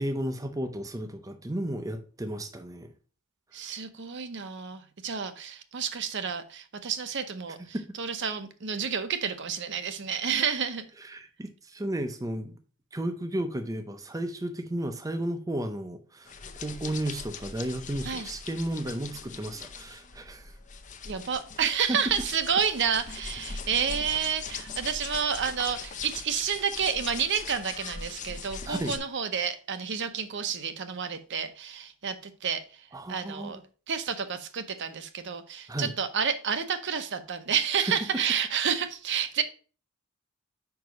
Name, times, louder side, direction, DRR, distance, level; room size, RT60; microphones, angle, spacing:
voice 1, 0.0-2.9 7.7-7.8 11.0-12.6 12.9-16.3 16.6-20.5 21.9-22.0 28.7-29.0 32.9-33.6 35.7-35.9 37.8-37.9, right 1 dB, 15° right, 6 dB, 0.6 m, -33 dB
voice 2, 3.5-10.9 18.1-18.3 21.1-33.6 33.9-39.4, right 7 dB, 55° right, 10 dB, 0.7 m, -30 dB
sound 1, 16.3-29.0, left 5 dB, 35° left, 0.6 m, -41 dB
5.2 x 4.7 x 5.1 m, 0.37 s
head